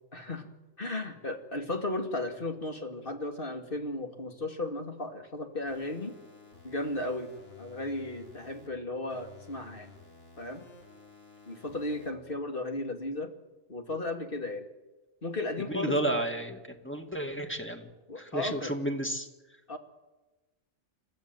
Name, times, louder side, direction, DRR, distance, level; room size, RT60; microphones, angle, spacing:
voice 1, 0.1-0.5 0.8-6.1 6.6-7.3 7.6-9.9 10.4-10.7 11.5-13.3 13.7-14.7 15.2-16.2 18.1-18.7 19.7-19.8, left 2 dB, 45° left, 4 dB, 2.4 m, -35 dB
sound 1, 5.7-8.7 9.1-12.1, left 3 dB, 60° left, 4.8 m, -54 dB
voice 2, 15.7-17.9 18.2-19.3, right 1 dB, 10° left, 4 dB, 2.2 m, -32 dB
29.0 x 14.0 x 9.0 m, 1.1 s
omnidirectional pair, 1.3 m